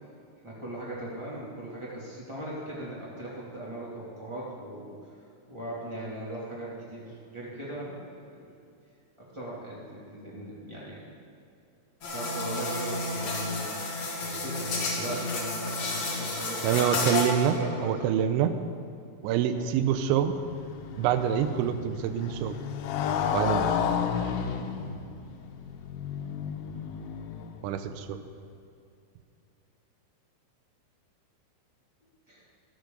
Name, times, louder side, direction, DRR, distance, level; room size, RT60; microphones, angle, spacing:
voice 1, 0.4-4.9 5.5-8.0 8.3-8.5 9.2-11.0 12.0-16.9 17.5-18.0 19.5-19.7 32.3-32.4, right 1 dB, 25° right, -7 dB, 0.6 m, -39 dB
sound 1, 12.0-17.5, left 2 dB, 45° left, 2.2 m, -31 dB
voice 2, 16.6-18.6 19.2-20.4 21.0-22.6 23.3-23.7 27.6-28.2, right 9 dB, 80° right, 9 dB, 2.8 m, -26 dB
Motorcycle, 19.7-27.8, left 7 dB, 85° left, 3.4 m, -32 dB
14.5 x 13.0 x 3.9 m, 2.6 s
omnidirectional pair, 5.7 m